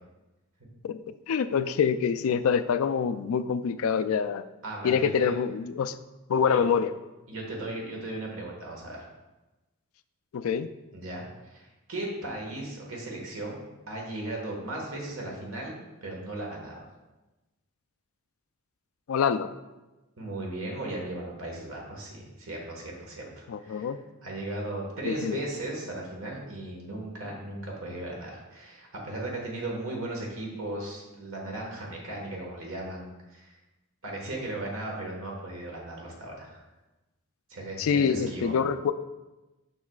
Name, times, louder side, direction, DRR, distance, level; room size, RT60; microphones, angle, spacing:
voice 1, 0.8-4.5 4.8-6.0 6.3-6.9 10.3-10.7 19.1-19.5 23.5-24.0 25.1-25.4 37.8-38.9, left 6 dB, 70° left, 12 dB, 0.3 m, -26 dB
voice 2, 4.6-5.3 6.5-6.6 7.3-9.1 10.9-16.8 20.2-23.9 24.2-33.5 34.0-36.6 37.5-38.5, right 2 dB, 65° right, -1 dB, 1.4 m, -37 dB
7.2 x 6.4 x 2.3 m, 1.1 s
head